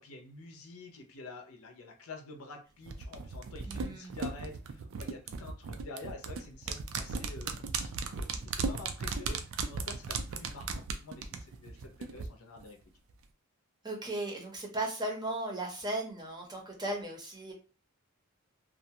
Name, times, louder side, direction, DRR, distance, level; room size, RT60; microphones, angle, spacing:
voice 1, 0.0-9.4 9.6-12.8, left 3 dB, 75° left, 3 dB, 0.6 m, -48 dB
sound 1, 2.9-12.3 12.6-12.7, right 4 dB, 65° right, 0.4 m, -36 dB
voice 2, 3.6-4.2 13.8-17.5, right 1 dB, 20° right, 0 dB, 0.6 m, -36 dB
2.5 x 2.1 x 2.7 m, 0.35 s
head